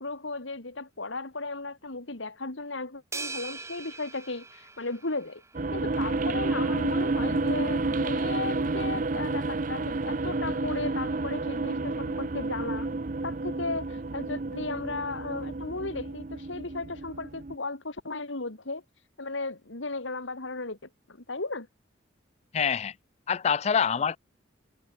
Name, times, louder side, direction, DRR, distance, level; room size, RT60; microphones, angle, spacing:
voice 1, 0.0-5.4 5.7-12.9 13.2-18.8 19.2-20.8 21.1-21.7, left 3 dB, 80° left, 2.4 m, -35 dB
sound 1, 3.1-5.6, right 4 dB, 15° right, 7.1 m, -40 dB
sound 2, 5.5-17.5, right 3 dB, 40° right, 0.6 m, -30 dB
voice 2, 22.5-22.9 23.3-24.2, left 7 dB, 35° left, 0.3 m, -25 dB
head